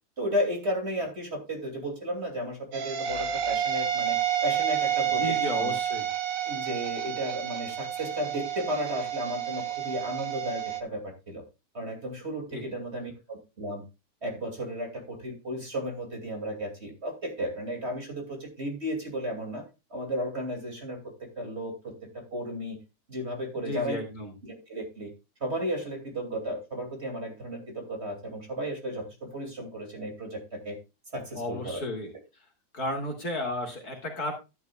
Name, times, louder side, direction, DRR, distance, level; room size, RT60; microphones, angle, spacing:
voice 1, 0.2-5.7 6.4-11.4 11.7-13.8 14.2-19.6 19.9-22.8 23.1-24.0 24.4-25.1 25.4-30.8 31.1-31.8, equal, 35° right, 3 dB, 3.0 m, -34 dB
sound 1, 2.7-10.8, right 10 dB, 55° right, 1.2 m, -30 dB
voice 2, 5.2-6.0 12.5-12.7 23.6-24.3 31.3-32.1 32.7-34.3, left 1 dB, 50° left, 2 dB, 3.3 m, -33 dB
12.0 x 11.0 x 2.4 m, 0.26 s
omnidirectional pair, 2.0 m